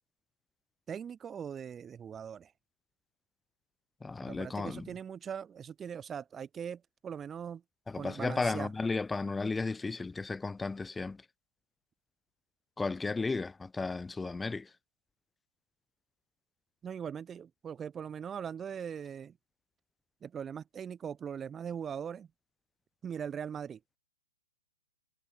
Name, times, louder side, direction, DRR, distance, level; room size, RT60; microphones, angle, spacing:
voice 1, 0.9-2.5 4.2-7.6 7.9-8.7 16.8-19.3 20.2-22.3 23.0-23.8, right 7 dB, 15° right, 1.5 m, -40 dB
voice 2, 4.0-4.9 7.9-11.2 12.8-14.7, left 3 dB, 5° left, 1.5 m, -34 dB
hypercardioid pair, 130°, 0 cm